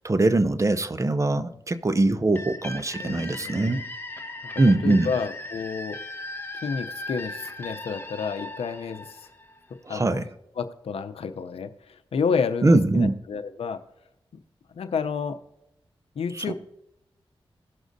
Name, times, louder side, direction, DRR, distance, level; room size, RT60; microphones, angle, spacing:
voice 1, 0.0-3.8 4.6-5.1 9.9-10.3 12.6-13.1 16.3-16.5, right 2 dB, 30° right, 11 dB, 0.7 m, -22 dB
sound 1, 2.3-9.9, left 2 dB, 20° left, 1.2 m, -38 dB
voice 2, 3.0-3.8 4.5-6.0 6.6-9.2 9.9-10.2 10.6-11.7 12.1-13.8 14.7-15.4 16.2-16.5, left 5 dB, 85° left, 10 dB, 0.6 m, -30 dB
17.5 x 6.2 x 2.6 m, 0.86 s
cardioid pair, 50°, 10 cm